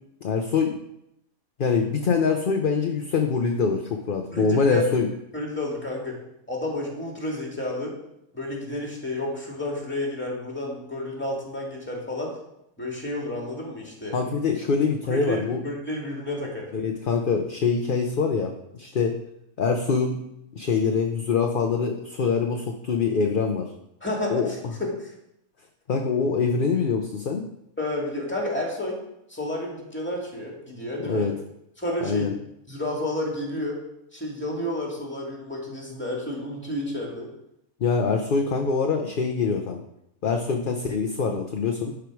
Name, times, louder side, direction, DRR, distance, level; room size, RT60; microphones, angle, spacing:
voice 1, 0.2-0.7 1.6-5.1 14.1-15.6 16.7-19.2 19.6-20.2 20.5-23.7 24.3-24.5 25.9-27.4 31.0-31.3 32.0-32.3 37.8-39.8 40.2-41.9, left 5 dB, 45° left, 3 dB, 0.7 m, -24 dB
voice 2, 4.3-4.8 5.3-6.2 6.5-7.9 8.3-12.3 12.8-14.2 15.0-16.7 24.0-25.1 27.8-29.0 29.3-31.3 31.8-32.3 32.7-33.8 34.1-37.3, left 1 dB, 10° left, -1 dB, 2.1 m, -31 dB
12.0 x 5.0 x 4.7 m, 0.81 s
omnidirectional pair, 1.5 m